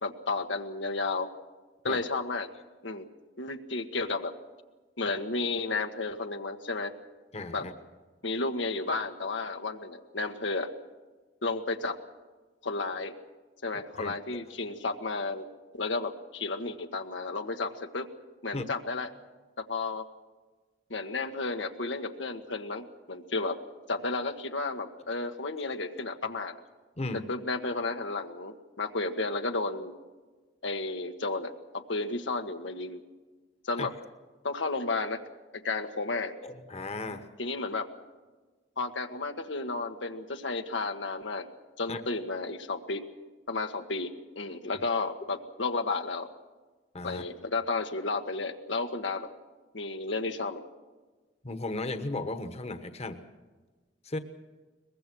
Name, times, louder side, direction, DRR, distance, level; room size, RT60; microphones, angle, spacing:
voice 1, 0.0-1.3 1.8-2.5 2.8-3.1 3.4-4.3 5.0-6.9 7.5-7.7 8.2-10.7 11.4-12.0 12.6-13.1 13.6-15.5 15.7-18.1 18.4-19.1 19.6-20.0 20.9-23.6 23.9-26.6 27.3-29.9 30.6-33.0 33.6-33.9 34.4-35.2 35.5-36.3 37.4-37.9 38.8-41.5 41.8-43.1 43.5-46.3 47.0-49.3 49.7-50.6, left 3 dB, 90° left, 6 dB, 1.4 m, -32 dB
voice 2, 7.3-7.7 14.0-14.2 18.5-18.6 27.0-27.3 33.8-33.9 36.4-37.3 41.9-42.0 46.9-47.3 51.4-53.2 54.0-54.2, left 2 dB, 35° left, 9 dB, 1.2 m, -35 dB
22.5 x 20.5 x 6.3 m, 1.3 s
head